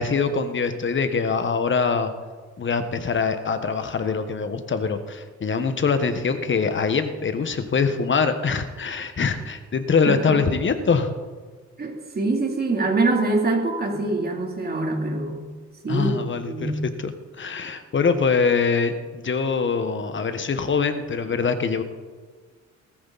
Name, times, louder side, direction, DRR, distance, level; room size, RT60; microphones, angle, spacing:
voice 1, 0.0-2.1 2.6-11.1 15.9-16.7 17.0-21.8, left 5 dB, 40° left, 9 dB, 1.5 m, -23 dB
voice 2, 10.0-10.4 11.8-15.4 15.8-16.7, right 2 dB, 30° right, 1 dB, 3.4 m, -24 dB
18.5 x 14.5 x 4.2 m, 1.5 s
cardioid pair, 90°, 30 cm